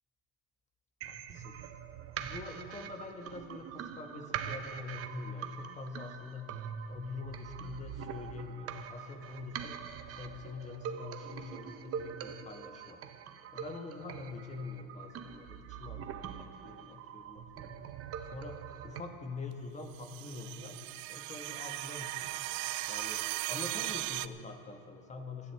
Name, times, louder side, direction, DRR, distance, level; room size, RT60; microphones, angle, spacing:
voice 1, 1.0-1.6 2.2-6.5 6.9-9.8 10.2-13.0 13.5-17.8 18.3-20.8 21.1-22.3 22.9-25.5, left 3 dB, 20° left, 4 dB, 1.4 m, -44 dB
sound 1, 1.0-19.0, right 8 dB, 35° right, 0.9 m, -43 dB
sound 2, 19.9-24.3, right 18 dB, 80° right, 0.6 m, -37 dB
27.5 x 10.5 x 3.5 m, 2.4 s
supercardioid pair, 120°, 38 cm